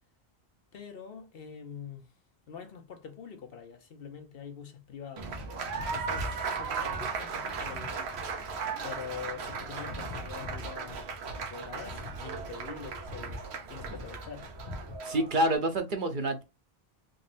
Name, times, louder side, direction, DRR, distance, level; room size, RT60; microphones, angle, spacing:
voice 1, 0.7-2.1 2.5-5.4 5.9-8.2 8.8-14.5, left 6 dB, 65° left, 1.0 m, -45 dB
sound 1, 5.2-15.0, left 1 dB, 85° left, 1.2 m, -44 dB
Applause, 5.2-15.6, right 5 dB, 90° right, 1.1 m, -37 dB
voice 2, 15.0-16.4, right 1 dB, 55° right, 0.9 m, -27 dB
3.7 x 3.1 x 2.6 m
omnidirectional pair, 1.1 m